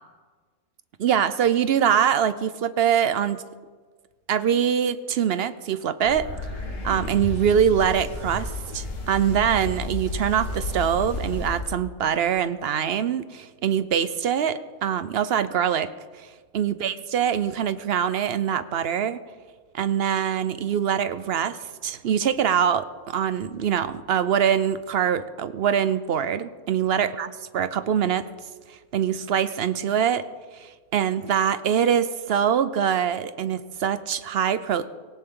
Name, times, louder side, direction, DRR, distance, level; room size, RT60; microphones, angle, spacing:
voice 1, 1.0-3.4 4.3-6.3 6.8-15.9 16.5-19.2 19.7-28.3 28.9-30.3 30.5-34.9, right 8 dB, 60° right, 14 dB, 0.7 m, -24 dB
sound 1, 6.0-11.6, left 2 dB, 55° left, 2.2 m, -32 dB
19.0 x 17.5 x 3.8 m, 1.5 s
omnidirectional pair, 1.6 m